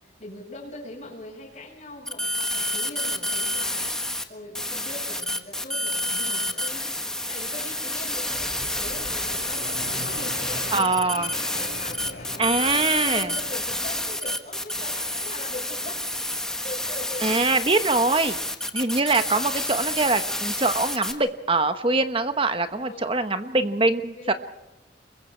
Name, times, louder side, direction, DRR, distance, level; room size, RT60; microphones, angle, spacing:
voice 1, 0.0-3.9 4.3-9.7 10.0-16.1 16.6-17.4 22.7-23.3 24.0-24.4, left 2 dB, 40° left, -4 dB, 6.3 m, -41 dB
sound 1, 2.1-4.2 4.5-21.1, left 1 dB, 5° left, 1.4 m, -29 dB
Fixed-wing aircraft airplane, 8.3-13.9, left 2 dB, 60° left, 3.8 m, -40 dB
voice 2, 10.7-11.3 12.4-13.3 17.2-18.4 18.7-24.3, right 3 dB, 30° right, 9 dB, 1.2 m, -23 dB
30.0 x 22.0 x 4.6 m, 0.95 s
head